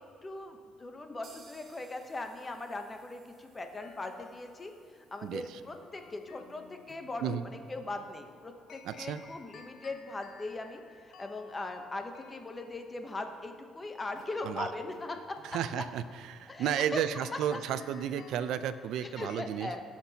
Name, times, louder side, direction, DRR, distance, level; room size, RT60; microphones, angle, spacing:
voice 1, 0.2-15.2 16.5-17.0 17.5-17.6 19.0-19.8, left 2 dB, 20° left, 5 dB, 0.8 m, -40 dB
sound 1, 1.2-9.0 9.3-9.4 9.7-9.8 10.2-10.3, right 4 dB, 50° right, 1.6 m, -63 dB
sound 2, 3.7-19.4, left 5 dB, 60° left, 0.7 m, -56 dB
voice 2, 5.2-5.6 7.2-7.4 8.8-9.2 14.4-14.7 15.4-19.7, right 9 dB, 80° right, 12 dB, 0.4 m, -33 dB
17.0 x 6.0 x 2.8 m, 2.2 s
cardioid pair, 120°, 0 cm